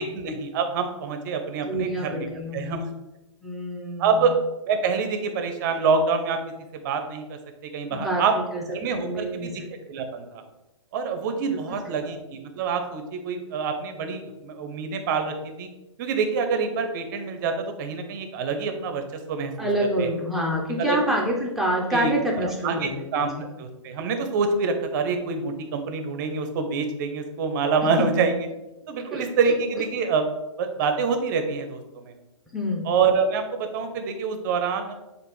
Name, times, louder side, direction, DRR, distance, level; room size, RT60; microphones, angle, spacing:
voice 1, 0.0-2.3 2.5-2.9 4.0-4.4 4.7-6.4 6.7-8.3 8.7-9.6 9.9-10.4 10.9-15.7 16.0-19.0 19.3-19.7 20.0-20.1 20.8-21.0 21.9-23.3 23.6-28.4 28.9-30.2 30.6-32.1 32.8-34.9, right 5 dB, 40° right, 6 dB, 0.6 m, -26 dB
voice 2, 1.6-2.9 3.4-4.3 7.9-9.6 12.0-12.1 19.6-23.5 28.0-28.1 29.1-29.5 32.5-32.9, right 1 dB, ahead, -3 dB, 0.7 m, -27 dB
6.7 x 2.5 x 3.1 m, 1.0 s
hypercardioid pair, 135°, 16 cm